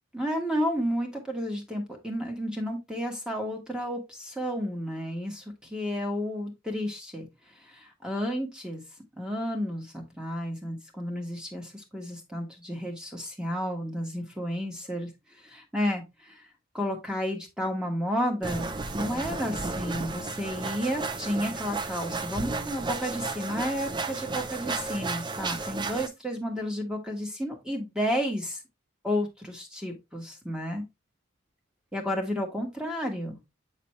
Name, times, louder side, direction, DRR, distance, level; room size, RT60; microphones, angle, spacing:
voice 1, 0.1-7.3 7.6-8.8 9.2-15.1 15.4-16.4 16.7-18.7 18.9-28.6 29.0-30.8 31.9-33.4, equal, 5° right, 2 dB, 1.6 m, -32 dB
sound 1, 18.4-26.1, right 3 dB, 25° right, 0.5 m, -33 dB
8.4 x 4.1 x 3.1 m, 0.22 s
head